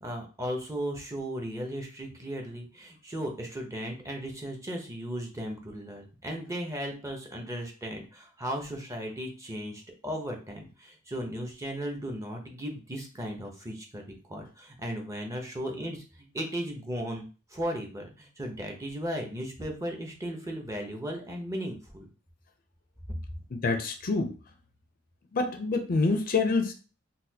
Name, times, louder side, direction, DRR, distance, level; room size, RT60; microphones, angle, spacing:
voice 1, 0.0-17.2 17.5-22.1, equal, 15° right, 2 dB, 0.6 m, -36 dB
voice 2, 23.5-24.3 25.3-26.7, left 3 dB, 45° left, 5 dB, 0.5 m, -26 dB
4.0 x 2.2 x 2.7 m, 0.35 s
head